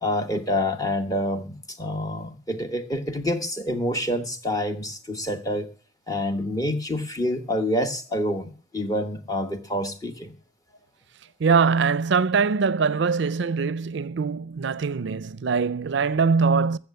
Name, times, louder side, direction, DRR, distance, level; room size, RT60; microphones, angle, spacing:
voice 1, 0.0-5.7 6.1-10.3, left 1 dB, 20° left, 1.2 m, -27 dB
voice 2, 11.4-16.8, right 5 dB, 65° right, 0.5 m, -22 dB
14.5 x 6.9 x 6.8 m
head